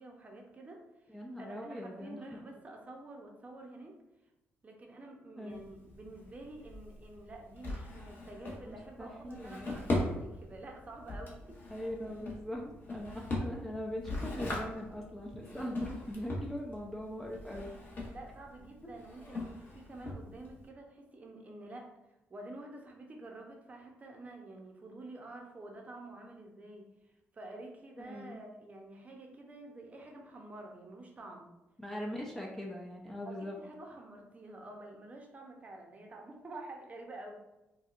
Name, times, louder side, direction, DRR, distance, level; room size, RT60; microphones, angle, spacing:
voice 1, 0.0-3.9 4.6-11.6 18.0-21.9 22.3-31.5 33.2-37.4, right 2 dB, 30° right, 1 dB, 0.7 m, -49 dB
voice 2, 1.1-2.2 5.4-5.6 8.6-9.7 11.7-17.7 28.0-28.4 31.8-33.6, equal, 5° left, -1 dB, 0.5 m, -41 dB
Drawer open or close, 5.5-20.7, left 1 dB, 45° left, 1.0 m, -40 dB
4.3 x 2.3 x 2.4 m, 0.94 s
cardioid pair, 90°, 5 cm